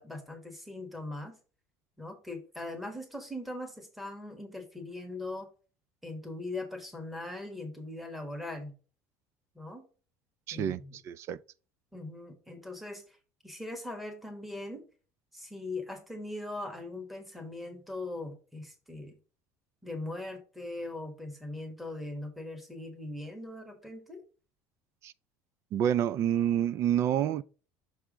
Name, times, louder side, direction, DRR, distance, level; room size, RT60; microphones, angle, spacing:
voice 1, 0.0-1.4 2.0-5.5 6.0-8.7 9.5-9.8 10.5-11.0 11.9-13.2 13.4-14.8 15.3-19.1 19.8-24.2, left 2 dB, ahead, 1.3 m, -40 dB
voice 2, 10.5-11.4 25.0-25.1 25.7-27.4, right 10 dB, 45° right, 0.3 m, -28 dB
6.2 x 3.4 x 4.9 m
cardioid pair, 140°, 7 cm